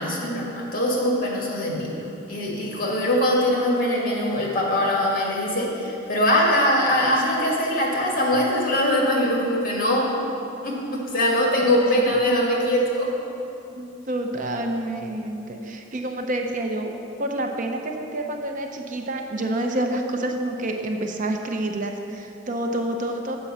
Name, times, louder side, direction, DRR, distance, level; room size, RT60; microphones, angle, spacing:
voice 1, 0.0-10.2 10.6-13.1, left 1 dB, 50° left, -2 dB, 1.8 m, -22 dB
voice 2, 11.7-12.0 13.7-16.9 17.2-23.4, right 1 dB, 45° right, 3 dB, 0.6 m, -28 dB
7.8 x 5.2 x 7.3 m, 2.7 s
head